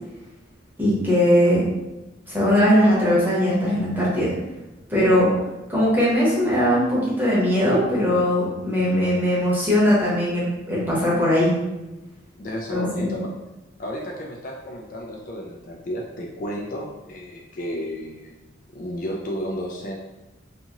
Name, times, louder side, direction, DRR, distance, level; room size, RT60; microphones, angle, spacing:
voice 1, 0.8-1.6 2.3-4.3 4.9-5.3 5.7-11.6 12.7-13.1, equal, 10° right, -8 dB, 0.8 m, -20 dB
voice 2, 12.4-13.3 13.8-18.3 18.7-20.0, equal, 45° left, -1 dB, 0.3 m, -32 dB
2.6 x 2.4 x 2.8 m, 1.0 s
head